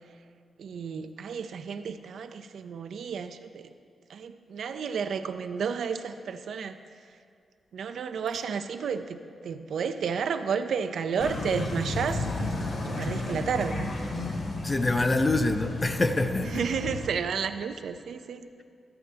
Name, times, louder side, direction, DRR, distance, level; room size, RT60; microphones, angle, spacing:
voice 1, 0.6-3.7 4.1-6.8 7.7-12.3 12.8-13.9 16.4-18.4, right 6 dB, 80° right, 9 dB, 0.4 m, -32 dB
sound 1, 11.2-17.1, left 2 dB, 55° left, 1.1 m, -33 dB
voice 2, 14.6-16.6, left 2 dB, 25° left, 8 dB, 0.5 m, -25 dB
12.0 x 7.7 x 3.3 m, 2.3 s
wide cardioid pair, 110°, 0 cm